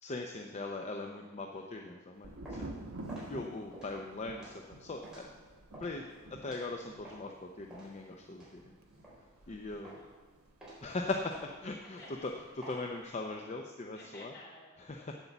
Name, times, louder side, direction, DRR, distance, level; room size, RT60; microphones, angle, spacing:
voice 1, 0.0-2.7 3.3-5.3 5.8-6.1 6.4-8.7 9.5-10.0 10.8-12.0 12.7-14.3 14.9-15.1, left 2 dB, 30° left, 3 dB, 0.6 m, -40 dB
voice 2, 1.1-1.8 6.0-6.3 9.3-10.1 11.8-12.6 13.9-15.1, left 2 dB, 55° left, -3 dB, 3.7 m, -56 dB
sound 1, 2.1-7.3 7.7-9.5 9.8-10.2 10.6-13.4, right 1 dB, 5° right, 4.0 m, -52 dB
Thunder, 2.2-11.9 12.1-12.9, right 1 dB, 85° right, 1.1 m, -49 dB
8.2 x 8.1 x 7.1 m, 1.4 s
head